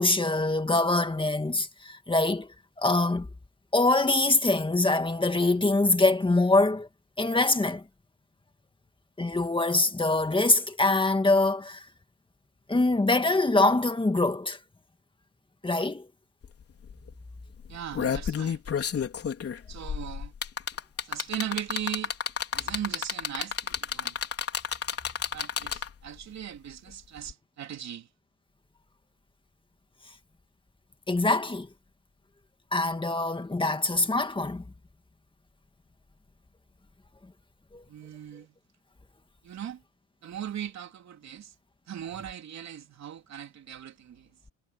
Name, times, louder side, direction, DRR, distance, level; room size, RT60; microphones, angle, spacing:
voice 1, 0.0-2.5 2.8-3.3 3.7-6.9 7.2-7.8 9.2-11.8 12.7-14.6 15.6-16.1 31.1-31.7 32.7-34.6 37.7-37.8, left 2 dB, 15° left, 2.2 m, -24 dB
sound 1, 16.4-16.5 16.8-17.1 17.6-26.1 27.3-27.4, left 7 dB, 50° left, 4.4 m, -31 dB
voice 2, 17.7-18.6 19.7-20.3 21.0-22.1 22.5-24.2 25.3-28.1 37.9-38.6 39.4-39.8 40.2-41.5 41.9-44.4, right 10 dB, 65° right, 3.3 m, -38 dB
cardioid pair, 90°, 30 cm